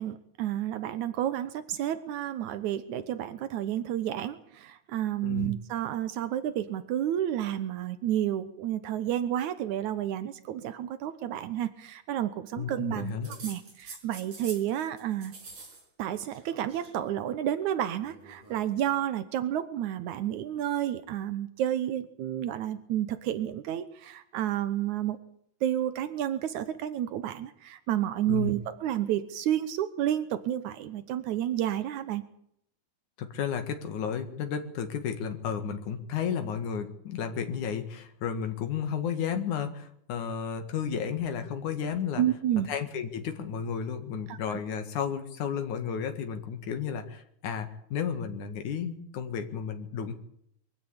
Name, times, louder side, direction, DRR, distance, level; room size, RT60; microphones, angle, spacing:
voice 1, 0.0-13.1 13.4-15.3 16.0-25.2 25.6-32.2 42.2-42.7 44.3-44.6, right 11 dB, 85° right, 12 dB, 2.5 m, -30 dB
voice 2, 5.2-5.5 12.6-13.3 28.3-28.5 33.2-42.2 42.7-50.1, left 7 dB, 85° left, 7 dB, 3.3 m, -33 dB
sound 1, 13.2-14.7 15.0-15.8 16.1-16.9 18.0-18.7, right 3 dB, 60° right, 6.4 m, -46 dB
23.5 x 15.5 x 8.8 m, 0.70 s
omnidirectional pair, 3.3 m